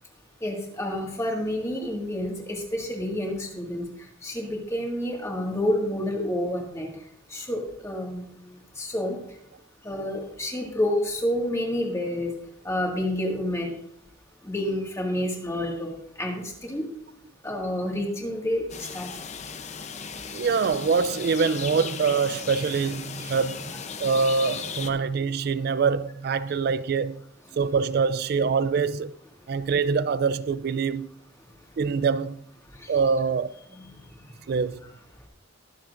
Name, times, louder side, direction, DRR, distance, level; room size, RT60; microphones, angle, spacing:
voice 1, 0.4-3.9 4.2-6.9 7.3-8.3 8.8-9.2 9.9-12.3 12.7-13.7 14.5-15.9 16.2-16.9 17.4-18.6 18.9-19.1, left 1 dB, 15° left, 1.8 m, -28 dB
sound 1, 18.7-24.9, left 6 dB, 35° left, 0.6 m, -37 dB
voice 2, 20.3-23.7 24.0-27.2 27.6-29.1 29.5-31.1 31.8-32.4 32.9-33.5 34.5-34.8, right 5 dB, 50° right, 0.3 m, -24 dB
21.5 x 7.2 x 2.5 m
head